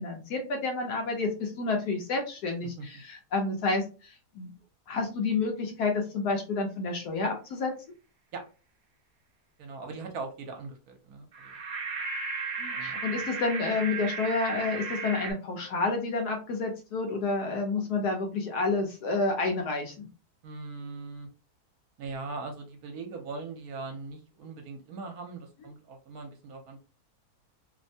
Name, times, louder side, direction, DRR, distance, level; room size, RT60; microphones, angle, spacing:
voice 1, 0.0-4.5 4.9-7.7 12.6-20.1, left 3 dB, 75° left, 2 dB, 1.3 m, -29 dB
voice 2, 9.6-11.5 12.7-13.0 20.4-21.3 22.0-26.8, right 3 dB, 70° right, 4 dB, 1.2 m, -40 dB
sound 1, 11.3-15.3, right 4 dB, 40° right, 0.7 m, -35 dB
3.2 x 2.1 x 2.7 m, 0.33 s
omnidirectional pair, 1.7 m